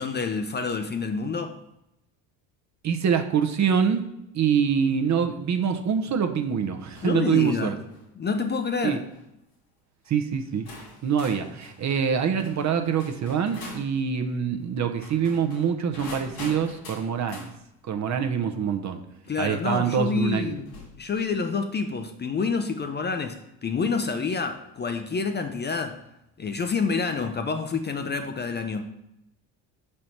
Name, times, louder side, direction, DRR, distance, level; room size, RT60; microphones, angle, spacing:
voice 1, 0.0-1.6 7.0-7.8 8.2-9.0 19.3-20.7 21.0-26.0 26.4-28.9, left 5 dB, 25° left, 0.5 m, -28 dB
voice 2, 2.8-4.0 4.3-7.8 8.8-9.0 10.1-10.7 11.0-17.5 17.8-19.0 19.4-20.6, right 7 dB, 40° right, 0.7 m, -25 dB
sound 1, 6.9-7.2 7.7-8.1 8.9-9.2 10.0-10.1 10.7-13.9 14.9-17.5 19.2-19.3 20.6-21.3, left 2 dB, 85° left, 2.2 m, -44 dB
5.1 x 4.4 x 4.3 m
hypercardioid pair, 65°, 43 cm